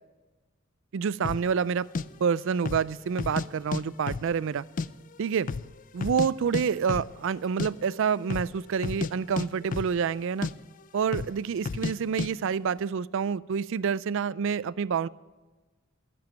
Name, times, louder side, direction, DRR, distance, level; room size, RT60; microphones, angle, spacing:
voice 1, 0.9-1.9 2.2-4.7 5.2-5.5 5.9-10.5 10.9-15.1, right 6 dB, 65° right, 19 dB, 0.4 m, -28 dB
sound 1, 1.2-1.5 1.9-2.0 2.6-2.9 3.2-4.9 5.1-5.2 5.5-6.3 6.5-6.6 6.9-7.1 7.4-7.7 8.2-8.5 8.8-9.1 9.4-10.2 10.4-10.5 11.1-11.4 11.7-11.9 12.2-12.3, left 4 dB, 40° left, 0.4 m, -31 dB
13.5 x 7.0 x 9.0 m, 1.2 s
head